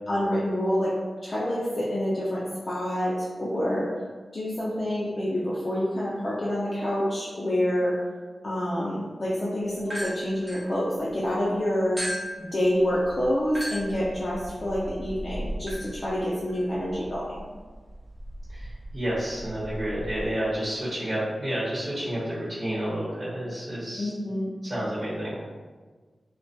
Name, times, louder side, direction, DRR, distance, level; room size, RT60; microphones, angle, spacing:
voice 1, 0.1-0.9 1.2-3.9 4.3-8.0 8.4-12.0 12.4-17.4 24.0-24.5, equal, 45° left, -8 dB, 0.4 m, -27 dB
sound 1, 9.8-11.3 12.0-20.3, equal, 15° right, 0.8 m, -38 dB
voice 2, 18.5-24.1 24.6-25.4, right 1 dB, 45° right, -11 dB, 1.0 m, -30 dB
2.3 x 2.2 x 2.6 m, 1.4 s
wide cardioid pair, 80°, 0 cm